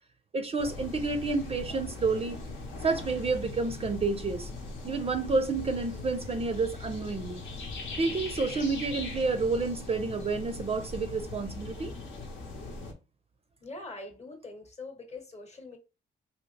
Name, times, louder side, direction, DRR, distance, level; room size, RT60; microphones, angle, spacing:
voice 1, 0.3-2.4 2.8-4.5 4.8-7.4 8.0-11.9, right 4 dB, 30° right, 0.4 m, -29 dB
sound 1, 0.6-12.9, left 3 dB, 75° left, 0.9 m, -40 dB
voice 2, 13.6-15.8, left 2 dB, 35° left, 0.9 m, -43 dB
2.8 x 2.7 x 3.1 m
cardioid pair, 90°, 20 cm